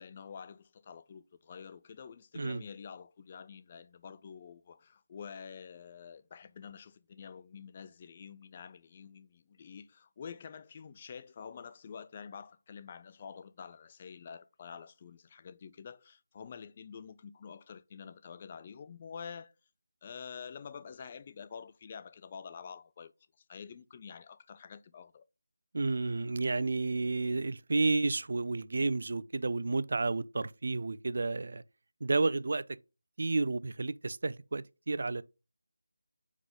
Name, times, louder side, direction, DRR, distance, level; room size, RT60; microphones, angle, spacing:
voice 1, 0.0-19.5 20.0-23.1 23.5-25.3, left 6 dB, 25° left, 0.3 m, -48 dB
voice 2, 25.7-31.6 32.0-32.7 33.2-35.2, right 3 dB, 55° right, 0.4 m, -31 dB
4.9 x 3.7 x 5.2 m
figure-of-eight pair, 165°, 0 cm